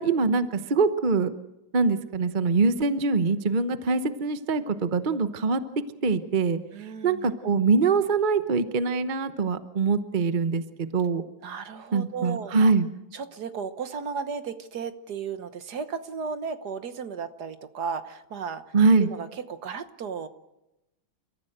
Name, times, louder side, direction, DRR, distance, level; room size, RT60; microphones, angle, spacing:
voice 1, 0.0-1.3 1.7-5.6 6.0-6.6 7.0-11.2 11.9-12.9 18.7-19.1, right 4 dB, 35° right, 11 dB, 0.8 m, -23 dB
voice 2, 6.7-7.3 11.4-12.7 13.1-20.3, right 6 dB, 55° right, 11 dB, 1.6 m, -35 dB
30.0 x 14.5 x 7.9 m, 0.93 s
omnidirectional pair, 2.2 m